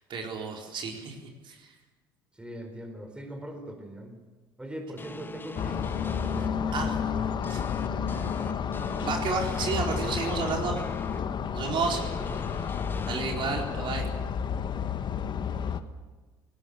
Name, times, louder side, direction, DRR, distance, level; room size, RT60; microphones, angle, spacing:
voice 1, 0.1-1.2 1.4-1.7 6.7-6.9 7.5-7.6 9.0-10.8 11.5-12.0 13.1-14.1, right 4 dB, 45° right, 0 dB, 4.5 m, -31 dB
voice 2, 2.3-4.2 4.6-7.2 7.6-8.6 11.7-12.4, right 1 dB, 10° right, 6 dB, 4.2 m, -42 dB
sound 1, 5.0-6.5 7.4-11.2 11.8-13.3, left 3 dB, 20° left, 1.6 m, -42 dB
sound 2, 5.6-15.8, left 7 dB, 40° left, 1.4 m, -31 dB
19.5 x 18.0 x 8.2 m, 1.3 s
hypercardioid pair, 65°, 12 cm